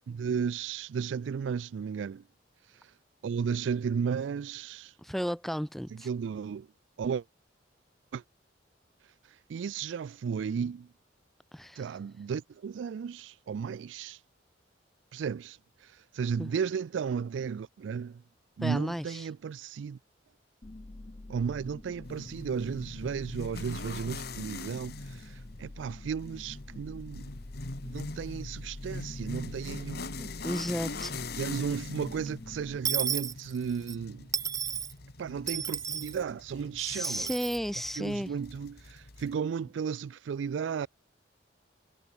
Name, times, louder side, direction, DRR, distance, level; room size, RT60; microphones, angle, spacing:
voice 1, 0.1-2.2 3.2-4.9 6.0-6.7 7.0-7.2 8.1-8.2 9.5-10.9 11.8-14.2 15.1-18.2 18.6-20.0 21.3-27.3 27.9-30.3 31.4-34.3 35.2-37.3 38.0-40.9, right 6 dB, 80° right, 0.3 m, -34 dB
voice 2, 5.0-6.1 11.5-11.8 16.4-16.5 18.6-19.3 30.2-31.2 36.8-38.3, equal, ahead, 1.2 m, -34 dB
sound 1, 20.6-32.8, left 2 dB, 30° left, 0.6 m, -46 dB
sound 2, 22.0-39.4, left 3 dB, 60° left, 2.1 m, -43 dB
Dishes pots and pans / Coin (dropping), 32.8-34.0 34.3-34.9 35.5-36.2 37.0-37.6, right 8 dB, 20° right, 0.4 m, -32 dB
head